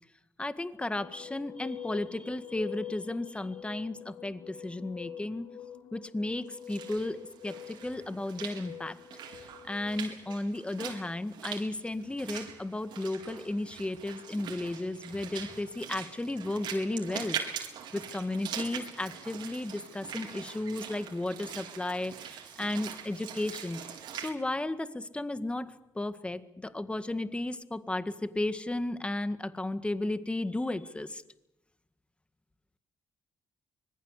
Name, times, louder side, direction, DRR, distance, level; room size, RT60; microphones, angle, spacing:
voice 1, 0.4-5.5 5.9-7.2 7.4-9.0 9.6-17.4 17.9-23.8 24.1-31.2, left 2 dB, 15° left, 12 dB, 1.9 m, -34 dB
sound 1, 1.0-10.3, left 9 dB, 75° left, 2.8 m, -46 dB
Walk footsteps / Splash splatter, 6.5-24.3, right 8 dB, 80° right, 4.5 m, -42 dB
25.5 x 20.5 x 8.3 m, 0.90 s
supercardioid pair, 70°, 8 cm